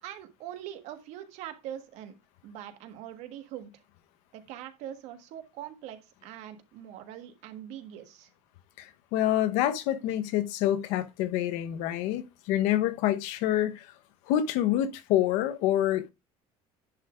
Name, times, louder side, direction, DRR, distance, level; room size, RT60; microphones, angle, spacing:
voice 1, 0.0-2.1 2.4-3.8 4.3-8.3, right 11 dB, 65° right, 1.5 m, -42 dB
voice 2, 8.8-13.9 14.3-16.1, left 12 dB, 85° left, 1.1 m, -27 dB
10.5 x 3.6 x 5.0 m
cardioid pair, 170°, 12 cm